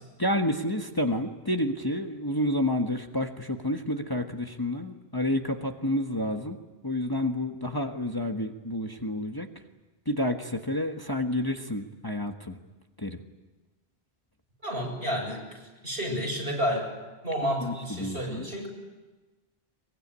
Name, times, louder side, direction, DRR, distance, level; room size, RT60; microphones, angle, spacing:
voice 1, 0.2-6.6 6.8-9.5 10.1-12.6 13.0-13.2 17.6-18.5, left 1 dB, 20° left, 4 dB, 1.5 m, -29 dB
voice 2, 14.6-16.9 17.2-18.7, equal, 65° right, 0 dB, 7.7 m, -31 dB
23.5 x 22.5 x 9.9 m, 1.2 s
omnidirectional pair, 1.0 m